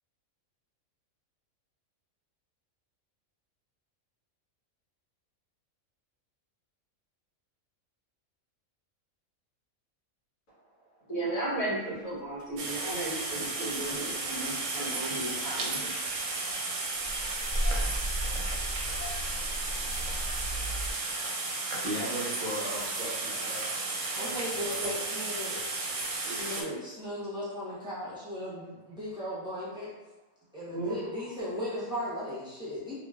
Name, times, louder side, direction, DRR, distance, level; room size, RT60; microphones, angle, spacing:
voice 1, 11.1-15.9 26.6-26.8 30.7-31.0, right 2 dB, 65° left, -9 dB, 1.5 m, -35 dB
Engine starting, 12.4-12.5 13.8-14.4 14.7-14.8 15.2-15.3 15.6-15.7 16.1-16.6 17.0-20.9, equal, 45° left, 1.2 m, -35 dB
sound 1, 12.6-26.6, right 3 dB, 70° right, 0.9 m, -34 dB
voice 2, 21.8-23.6 24.0-24.9 26.2-26.6, equal, 45° right, -9 dB, 0.5 m, -38 dB
voice 3, 24.2-25.8 26.2-29.9 30.5-32.9, equal, 5° right, -10 dB, 0.8 m, -37 dB
2.9 x 2.8 x 2.3 m, 1.1 s
omnidirectional pair, 1.5 m